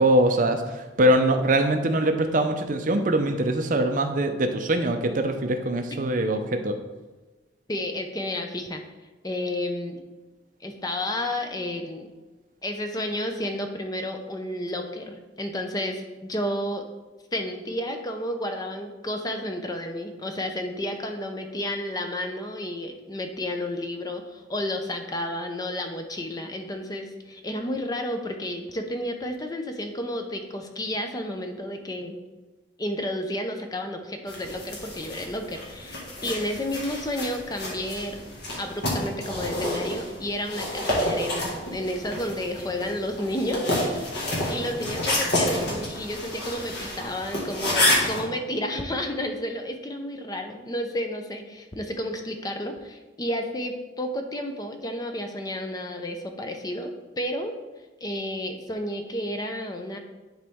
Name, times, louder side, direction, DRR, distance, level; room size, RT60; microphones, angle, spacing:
voice 1, 0.0-6.8, right 1 dB, 45° right, 6 dB, 0.5 m, -23 dB
voice 2, 7.7-8.8 9.2-10.0 10.6-12.1 12.6-16.9 17.3-32.2 32.8-38.3 38.6-44.1 44.5-57.5 58.0-60.0, left 1 dB, 20° left, 5 dB, 0.5 m, -31 dB
sound 1, 34.3-48.2, left 1 dB, 55° left, 1.8 m, -29 dB
10.5 x 4.0 x 3.5 m, 1.2 s
head